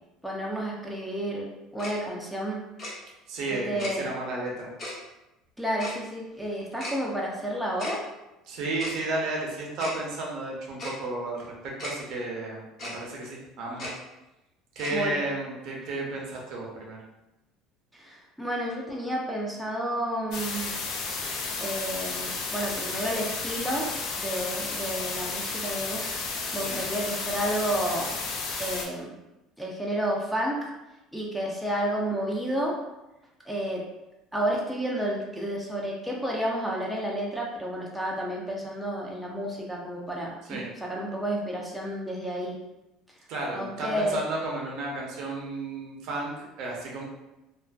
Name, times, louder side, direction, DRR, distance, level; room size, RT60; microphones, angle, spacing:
voice 1, 0.2-1.5 1.7-2.6 3.5-4.1 5.6-8.0 14.9-15.2 17.9-20.7 21.6-23.9 24.2-26.1 26.5-28.2 28.6-29.1 29.6-30.7 31.1-32.8 33.5-33.8 34.3-42.6 43.5-44.2, equal, ahead, -3 dB, 0.4 m, -31 dB
Tick-tock, 1.8-1.9 2.8-2.9 3.8-3.9 4.8-4.9 5.8-6.0 6.8-7.0 7.8-8.0 8.8-9.0 9.8-10.0 10.8-10.9 11.8-11.9 12.8-13.0 13.8-13.9 14.8-15.0, left 1 dB, 45° left, 1.0 m, -35 dB
voice 2, 3.3-4.7 8.5-13.9 14.8-17.0 26.6-26.8 40.5-40.7 43.3-47.0, right 2 dB, 65° right, -2 dB, 0.7 m, -33 dB
sound 1, 20.3-28.8, left 4 dB, 60° left, 0.4 m, -32 dB
2.4 x 2.3 x 2.3 m, 0.97 s
supercardioid pair, 110°, 0 cm